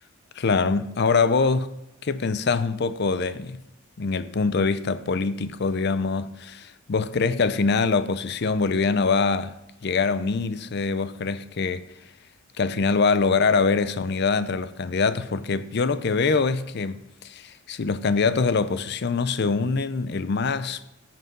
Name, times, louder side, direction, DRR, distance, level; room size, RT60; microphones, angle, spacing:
voice 1, 0.4-1.7 2.0-3.6 4.0-9.5 9.8-11.9 12.6-20.8, left 4 dB, 50° left, 0.5 m, -24 dB
9.2 x 6.0 x 5.8 m
head